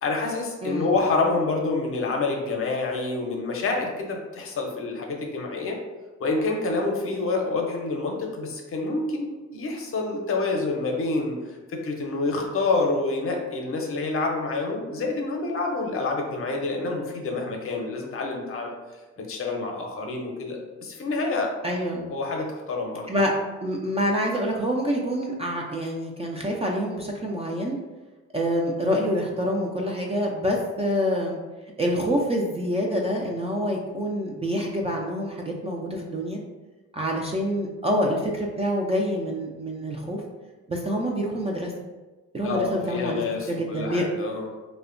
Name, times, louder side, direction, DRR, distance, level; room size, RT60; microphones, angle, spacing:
voice 1, 0.0-5.8 6.2-18.7 19.3-21.8 22.1-23.2 42.4-44.5, left 3 dB, 45° left, 1 dB, 0.6 m, -27 dB
voice 2, 0.6-0.9 21.6-22.1 23.1-23.3 23.6-27.8 28.3-31.4 31.8-36.4 36.9-40.2 40.7-41.7 42.3-43.2 43.5-44.0, equal, 20° right, -1 dB, 0.3 m, -26 dB
2.7 x 2.1 x 2.5 m, 1.2 s
cardioid pair, 90°, 30 cm